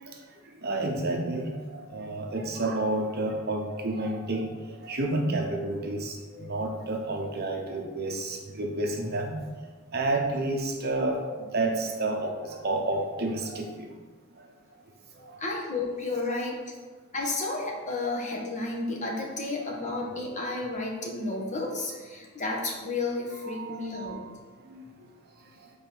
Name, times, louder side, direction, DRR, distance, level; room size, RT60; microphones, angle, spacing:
voice 1, 0.6-4.5 4.8-9.4 9.9-11.3 11.5-13.9 23.5-24.1 24.7-24.8, right 2 dB, 50° right, 1 dB, 1.0 m, -30 dB
voice 2, 15.4-16.6 17.1-24.2, left 2 dB, 35° left, -1 dB, 1.2 m, -32 dB
5.3 x 4.0 x 6.0 m, 1.4 s
head